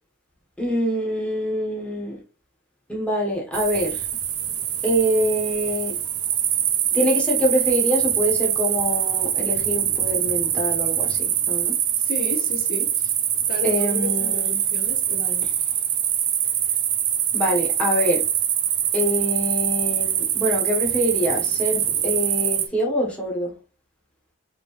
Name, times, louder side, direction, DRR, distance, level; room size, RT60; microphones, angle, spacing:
voice 1, 0.6-2.2 2.9-4.0 4.8-5.9 6.9-11.7 13.6-14.6 17.3-18.2 18.9-23.5, equal, 5° left, 1.3 m, -25 dB
sound 1, 3.5-22.7, right 10 dB, 80° right, 0.8 m, -24 dB
voice 2, 12.0-12.9 13.5-15.5, left 2 dB, 40° left, 1.0 m, -33 dB
5.1 x 3.0 x 3.2 m
head